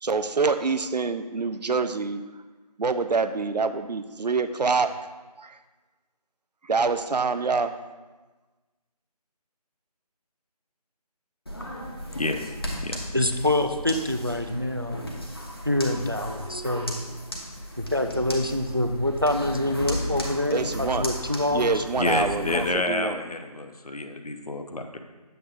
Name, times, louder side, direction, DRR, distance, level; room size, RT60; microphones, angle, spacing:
voice 1, 0.0-2.2 2.8-5.0 5.4-5.5 6.7-7.7 20.5-21.1 21.5-23.2, right 4 dB, 90° right, 10 dB, 0.6 m, -26 dB
sound 1, 11.5-22.7, equal, 35° left, 1.0 m, -35 dB
voice 2, 13.1-15.0 15.7-17.0 17.8-21.8, left 1 dB, 35° right, 7 dB, 0.4 m, -26 dB
voice 3, 22.0-25.0, left 2 dB, 65° left, 6 dB, 0.8 m, -29 dB
7.9 x 7.8 x 2.5 m, 1.3 s
figure-of-eight pair, 180°, 21 cm